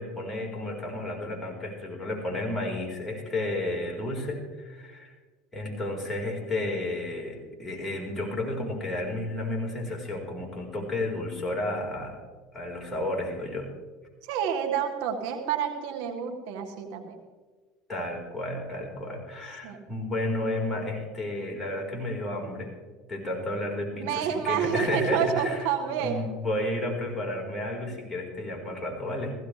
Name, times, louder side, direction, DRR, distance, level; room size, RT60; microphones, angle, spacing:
voice 1, 0.0-5.1 5.5-12.2 12.5-13.7 17.9-22.7 23.1-25.7 26.0-29.3, left 1 dB, 15° left, -2 dB, 4.3 m, -32 dB
voice 2, 14.2-17.2 19.6-19.8 24.0-26.2, right 8 dB, 75° right, 3 dB, 1.7 m, -29 dB
16.0 x 16.0 x 3.3 m, 1.4 s
supercardioid pair, 100°, 0 cm